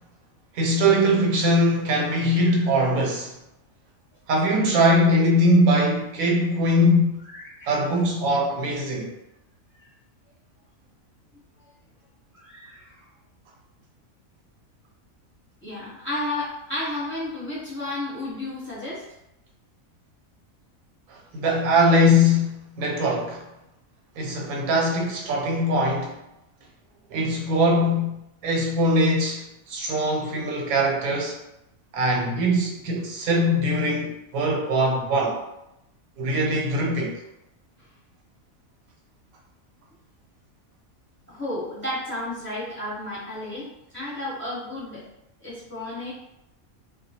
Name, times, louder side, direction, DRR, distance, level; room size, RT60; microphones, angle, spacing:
voice 1, 0.6-3.3 4.3-7.2 7.7-9.1 21.3-23.4 24.2-26.1 27.1-28.1 28.4-29.4 29.7-31.4 31.9-35.4 36.2-37.2, equal, 90° right, 1.1 m, -21 dB
voice 2, 7.2-7.9 9.0-9.1 12.3-13.0 15.6-19.0 41.3-45.1 45.4-46.1, left 1 dB, 10° left, 0.8 m, -33 dB
2.3 x 2.2 x 2.7 m
omnidirectional pair, 1.4 m